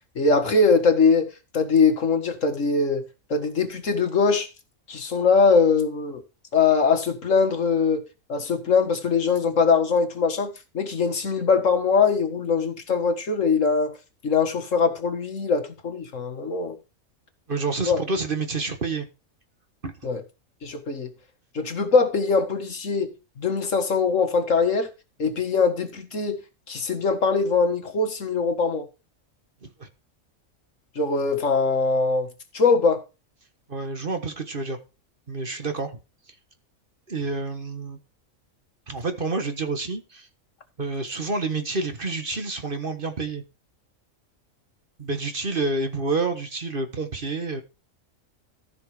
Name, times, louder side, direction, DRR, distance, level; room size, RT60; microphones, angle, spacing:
voice 1, 0.2-1.3 1.5-3.0 3.3-4.5 4.9-6.2 6.5-8.0 8.3-14.0 14.2-16.7 17.8-18.0 20.0-20.2 20.6-21.1 21.5-23.1 23.4-24.9 25.2-26.4 26.7-28.9 31.0-32.3 32.5-33.0, left 4 dB, 70° left, 2.0 m, -22 dB
voice 2, 17.5-19.1 19.8-19.9 29.8-29.9 33.7-34.8 35.3-36.0 37.1-38.0 38.9-40.3 40.8-43.4 45.0-47.6, right 3 dB, 40° right, 1.6 m, -28 dB
14.5 x 5.9 x 5.0 m
omnidirectional pair, 1.4 m